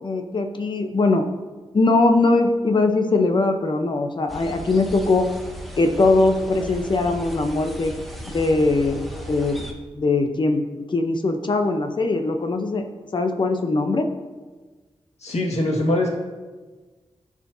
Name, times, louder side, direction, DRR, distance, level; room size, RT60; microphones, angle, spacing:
voice 1, 0.0-1.3 1.7-5.3 5.8-7.9 8.3-9.7 9.9-10.6 10.9-12.9 13.1-14.1, left 3 dB, 45° left, 5 dB, 0.8 m, -21 dB
sound 1, 4.3-9.7, equal, ahead, 0.9 m, -36 dB
voice 2, 15.2-16.1, left 1 dB, 75° left, -2 dB, 1.8 m, -22 dB
15.0 x 5.0 x 2.7 m, 1.3 s
wide cardioid pair, 140°, 11 cm